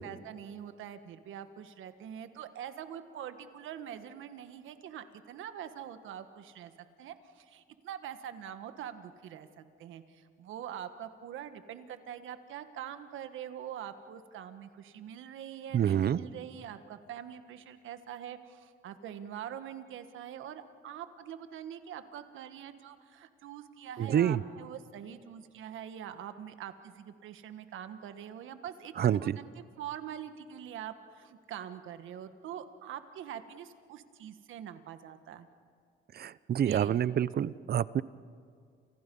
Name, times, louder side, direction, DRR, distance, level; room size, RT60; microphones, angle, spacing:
voice 1, 0.0-6.7 7.0-29.5 29.8-35.5 36.6-37.0 37.4-37.5, right 9 dB, 80° right, 10 dB, 1.5 m, -44 dB
voice 2, 15.7-16.2 24.0-24.4 29.0-29.4 36.1-38.0, right 9 dB, 50° right, 18 dB, 0.7 m, -27 dB
29.5 x 28.0 x 5.4 m, 2.3 s
cardioid pair, 90°, 20 cm